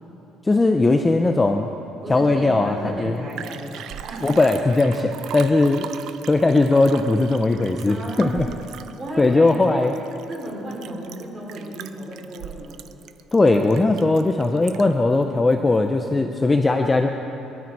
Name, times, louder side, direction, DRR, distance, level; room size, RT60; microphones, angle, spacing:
voice 1, 0.4-1.7 2.1-3.2 4.2-5.9 6.3-8.5 9.2-9.9 13.3-17.1, left 2 dB, 15° left, 5 dB, 0.6 m, -19 dB
voice 2, 2.0-4.4 7.9-8.5 9.0-9.9 10.3-12.9, right 1 dB, 20° right, -3 dB, 3.9 m, -33 dB
Liquid, 2.8-2.9 3.1-15.1 15.5-15.6, right 9 dB, 60° right, 0.6 m, -39 dB
22.0 x 12.5 x 4.7 m, 3.0 s
cardioid pair, 150°, 0 cm